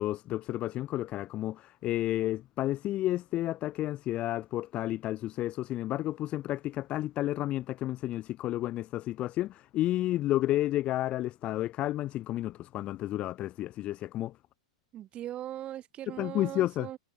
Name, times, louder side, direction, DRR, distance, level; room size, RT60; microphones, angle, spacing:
voice 1, 0.0-14.4 16.2-16.9, left 14 dB, 30° left, 0.4 m, -31 dB
voice 2, 14.9-17.0, right 12 dB, 30° right, 1.4 m, -39 dB
hypercardioid pair, 115°, 4 cm